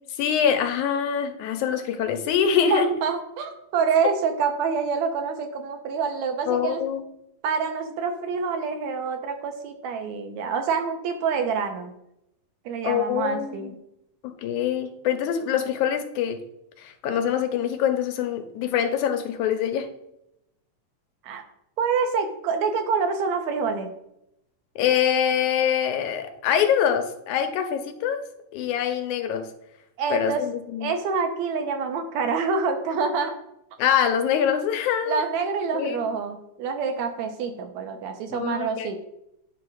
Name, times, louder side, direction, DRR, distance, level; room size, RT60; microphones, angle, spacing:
voice 1, 0.2-2.9 6.5-7.0 12.8-13.7 14.2-16.4 16.8-19.9 24.8-28.2 28.5-29.5 30.1-30.9 33.8-35.2 35.7-36.1 38.3-38.9, left 8 dB, 90° left, 6 dB, 2.3 m, -24 dB
voice 2, 2.7-6.8 7.4-11.9 12.7-13.7 21.2-21.4 21.8-23.9 30.0-30.4 30.8-33.3 35.1-39.1, right 5 dB, 75° right, 6 dB, 2.2 m, -26 dB
9.6 x 3.5 x 6.3 m, 0.81 s
omnidirectional pair, 3.4 m